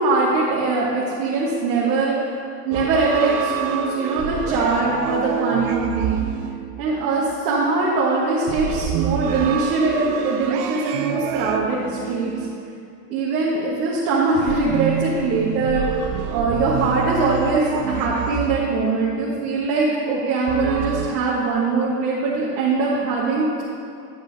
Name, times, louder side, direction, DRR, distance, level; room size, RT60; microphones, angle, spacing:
voice 1, 0.0-6.2 6.8-12.4 13.1-23.6, right 3 dB, 70° right, -6 dB, 1.6 m, -22 dB
sound 1, 2.7-7.3 8.5-13.2 14.5-19.1 20.5-21.1, right 9 dB, 45° right, 0.6 m, -28 dB
10.0 x 5.6 x 4.0 m, 2.4 s
supercardioid pair, 110°, 50 cm